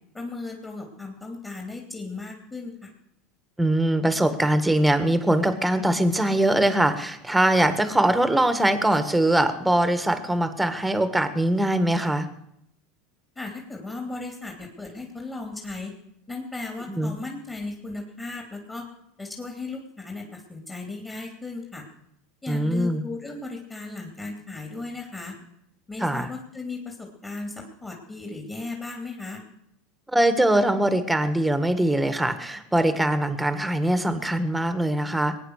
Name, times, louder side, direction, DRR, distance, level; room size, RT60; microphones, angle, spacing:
voice 1, 0.1-2.9 13.3-15.9 16.3-18.8 19.2-21.8 22.4-25.4 25.9-29.4, left 3 dB, 20° left, 0 dB, 3.0 m, -36 dB
voice 2, 3.6-12.3 16.9-17.1 22.5-23.0 26.0-26.3 30.1-35.4, right 1 dB, 5° right, 10 dB, 1.6 m, -22 dB
20.5 x 9.4 x 6.6 m, 0.78 s
hypercardioid pair, 105°, 0 cm